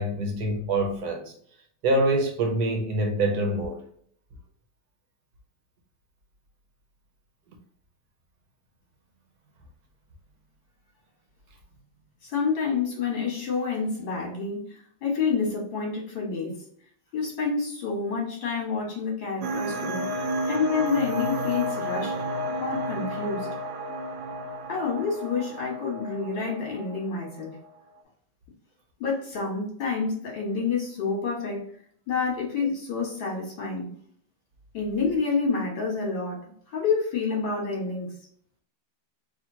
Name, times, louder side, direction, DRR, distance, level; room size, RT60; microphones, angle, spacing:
voice 1, 0.0-1.3 1.8-3.8, right 1 dB, 60° right, 1.3 m, -25 dB
voice 2, 12.2-16.6 17.1-20.1 20.5-22.2 22.6-23.5 24.7-27.6 29.0-31.7 32.1-33.9 34.7-38.1, left 5 dB, 75° left, 2.5 m, -28 dB
sound 1, 19.4-27.7, equal, 85° right, 1.4 m, -32 dB
4.9 x 2.7 x 2.8 m
omnidirectional pair, 2.1 m